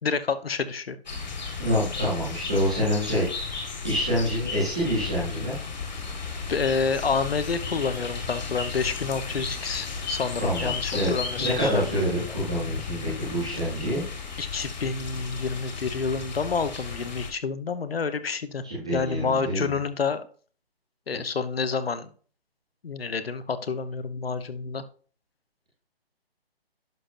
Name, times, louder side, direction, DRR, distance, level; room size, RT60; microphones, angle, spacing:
voice 1, 0.0-1.0 6.5-12.0 14.4-18.6 18.9-20.2 21.1-22.1 22.8-24.8, left 5 dB, 70° left, 12 dB, 0.9 m, -28 dB
sound 1, 1.1-17.3, left 4 dB, 45° left, 1.6 m, -34 dB
voice 2, 1.6-5.5 10.4-14.0 18.6-19.7, equal, 5° right, -8 dB, 0.8 m, -27 dB
11.0 x 5.8 x 2.5 m, 0.41 s
hypercardioid pair, 175°, 31 cm